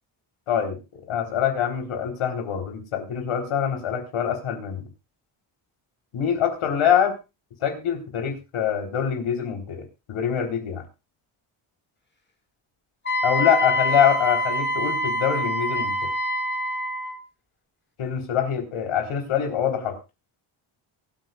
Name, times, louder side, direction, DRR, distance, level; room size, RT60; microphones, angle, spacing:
voice 1, 0.5-4.9 6.1-7.2 7.6-10.8 13.2-16.1 18.0-20.0, left 8 dB, 80° left, 3 dB, 3.9 m, -25 dB
Wind instrument woodwind instrument, 13.1-17.2, left 1 dB, 20° left, 1.9 m, -25 dB
23.5 x 9.2 x 2.5 m, 0.28 s
cardioid pair, 125°, 50 cm